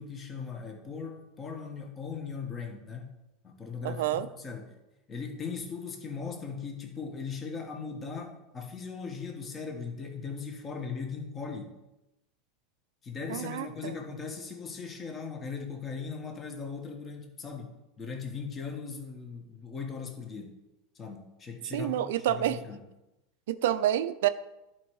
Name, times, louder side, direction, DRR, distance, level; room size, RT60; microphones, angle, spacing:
voice 1, 0.0-3.1 3.4-4.7 5.1-11.7 13.0-20.5 20.9-22.8, left 5 dB, 30° left, 3 dB, 1.5 m, -39 dB
voice 2, 3.8-4.3 13.3-14.0 21.7-22.6 23.5-24.3, right 12 dB, 80° right, 12 dB, 0.5 m, -28 dB
10.5 x 4.5 x 4.8 m, 0.95 s
hypercardioid pair, 105°, 0 cm